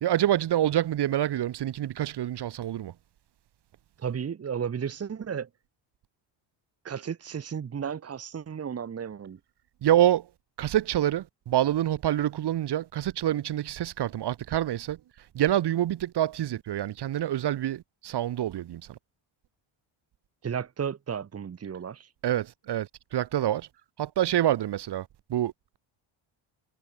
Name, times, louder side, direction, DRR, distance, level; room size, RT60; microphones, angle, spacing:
voice 1, 0.0-2.9 9.8-10.3 10.6-15.0 15.3-19.0 22.2-23.7 24.0-25.8, right 12 dB, 55° right, 2.2 m, -27 dB
voice 2, 4.0-5.5 6.8-9.4 20.4-22.1, right 7 dB, 30° right, 2.4 m, -33 dB
cardioid pair, 165°, 49 cm